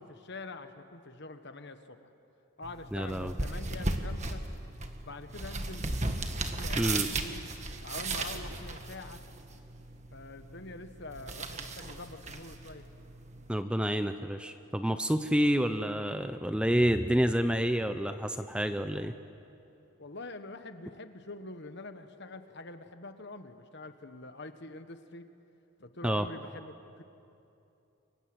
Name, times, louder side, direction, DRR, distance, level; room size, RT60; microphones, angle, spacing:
voice 1, 0.0-2.1 2.6-4.4 5.0-5.8 6.3-7.5 7.8-9.2 9.9-12.9 20.0-25.3 25.8-27.0, left 2 dB, 50° left, 9 dB, 1.4 m, -45 dB
sound 1, 2.6-13.6, right 2 dB, 30° right, 1.6 m, -37 dB
voice 2, 2.9-3.3 6.8-7.1 13.5-19.1 26.0-26.3, equal, 5° right, 8 dB, 0.6 m, -28 dB
30.0 x 24.5 x 8.0 m, 2.8 s
head